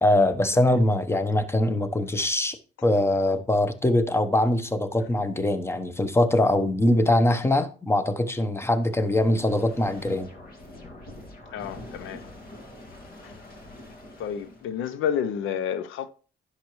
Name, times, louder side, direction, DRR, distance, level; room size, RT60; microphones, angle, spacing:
voice 1, 0.0-2.6 2.8-10.3, left 1 dB, 10° left, 1.0 m, -22 dB
sound 1, 9.0-14.8, left 1 dB, 50° left, 2.1 m, -44 dB
voice 2, 11.5-12.3 13.2-13.4 14.2-16.1, left 8 dB, 85° left, 0.6 m, -30 dB
10.5 x 6.7 x 3.1 m
cardioid pair, 90°, 20 cm